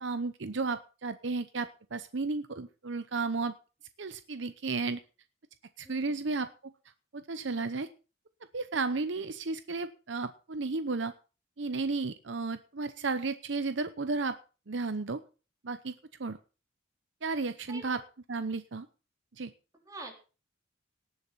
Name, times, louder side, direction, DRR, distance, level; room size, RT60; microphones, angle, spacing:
voice 1, 0.0-3.5 4.0-5.0 5.8-6.7 7.1-7.9 8.5-11.1 11.6-14.4 14.7-15.2 15.6-15.9 16.2-16.4 17.2-18.0 18.3-18.9 19.4-19.5, right 3 dB, 60° right, 11 dB, 0.8 m, -33 dB
voice 2, 5.8-6.3 17.7-18.0 19.9-20.1, right 2 dB, 15° right, 1 dB, 3.6 m, -45 dB
18.5 x 7.1 x 5.7 m, 0.35 s
head